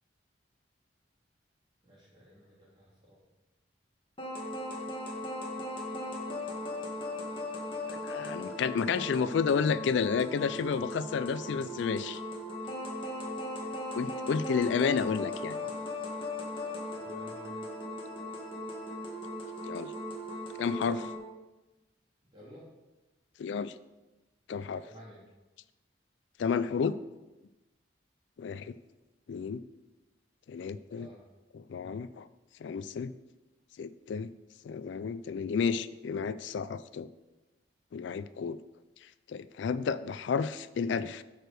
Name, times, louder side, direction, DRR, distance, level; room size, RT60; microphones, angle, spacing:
voice 1, 1.8-3.2 15.8-16.0 17.0-17.6 22.3-22.7 24.8-25.2 30.9-31.2, equal, 25° right, -6 dB, 3.0 m, -52 dB
sound 1, 4.2-21.2, left 1 dB, 30° left, 1.6 m, -38 dB
voice 2, 8.1-12.2 13.9-15.6 19.7-19.9 20.6-21.1 23.4-23.7 24.5-24.8 26.4-27.0 28.4-28.7 29.3-29.6 30.5-31.1 31.5-32.3 32.6-33.1 33.8-34.3 34.6-37.1 37.9-38.6 39.3-41.2, left 6 dB, 75° left, 15 dB, 0.3 m, -31 dB
8.9 x 5.0 x 6.3 m, 1.1 s
head